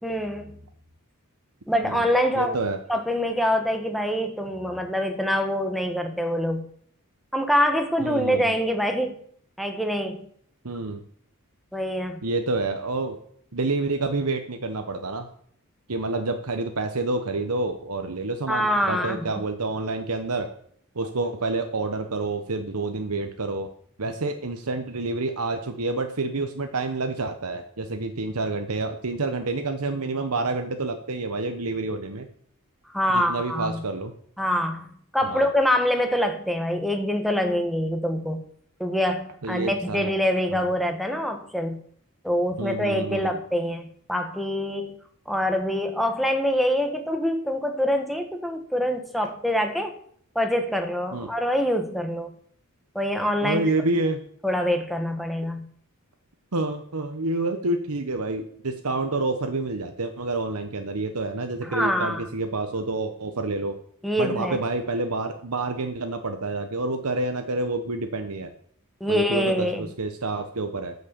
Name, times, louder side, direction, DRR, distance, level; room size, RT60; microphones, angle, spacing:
voice 1, 0.0-0.6 1.7-2.6 2.9-6.6 7.3-9.2 9.6-10.3 11.7-12.2 18.5-19.2 32.9-33.8 34.4-34.8 35.1-38.4 38.8-41.8 42.2-43.8 44.1-45.0 45.3-49.9 50.3-52.3 52.9-53.6 54.4-55.7 61.6-62.2 64.0-64.6 69.0-69.9, equal, ahead, 5 dB, 1.4 m, -25 dB
voice 2, 2.3-2.8 8.0-8.5 10.6-11.0 12.2-13.2 13.5-15.3 15.9-20.5 20.9-23.7 24.0-32.3 33.1-34.1 35.2-35.5 39.4-40.1 40.5-40.7 42.6-43.4 51.1-51.3 53.4-54.2 56.5-63.8 64.2-68.5 69.1-70.9, right 2 dB, 90° right, 6 dB, 1.1 m, -28 dB
13.5 x 6.4 x 7.1 m, 0.64 s
head